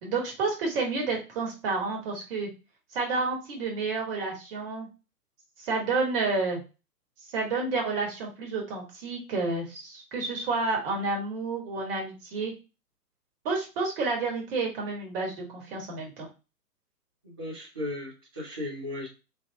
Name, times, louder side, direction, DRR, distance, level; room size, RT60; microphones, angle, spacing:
voice 1, 0.0-2.5 2.9-4.9 5.6-6.6 7.3-12.5 13.4-16.3, right 3 dB, 35° right, 0 dB, 1.5 m, -30 dB
voice 2, 17.2-19.1, left 2 dB, 15° right, -9 dB, 0.4 m, -36 dB
3.3 x 2.3 x 3.5 m, 0.29 s
hypercardioid pair, 135°, 49 cm